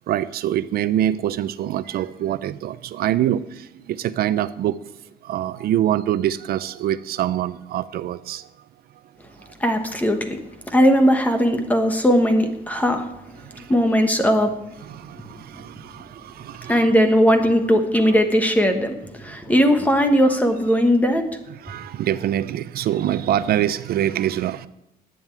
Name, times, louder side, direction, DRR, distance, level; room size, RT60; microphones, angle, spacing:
voice 1, 0.1-4.8 5.2-8.4 13.6-13.7 14.8-16.9 21.6-24.7, right 11 dB, 65° right, 14 dB, 0.5 m, -24 dB
voice 2, 9.6-10.4 10.7-13.1 13.7-14.6 16.7-21.3, equal, 10° left, 6 dB, 1.2 m, -18 dB
11.0 x 9.0 x 9.1 m, 0.90 s
cardioid pair, 175°, 17 cm